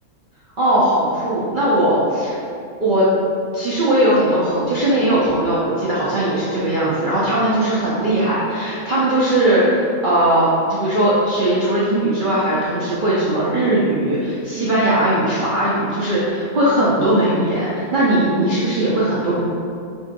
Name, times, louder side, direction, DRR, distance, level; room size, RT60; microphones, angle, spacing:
voice 1, 0.6-2.4 2.8-3.1 3.5-19.4, right 1 dB, 55° right, -9 dB, 0.5 m, -19 dB
4.6 x 2.6 x 2.5 m, 2.4 s
omnidirectional pair, 1.5 m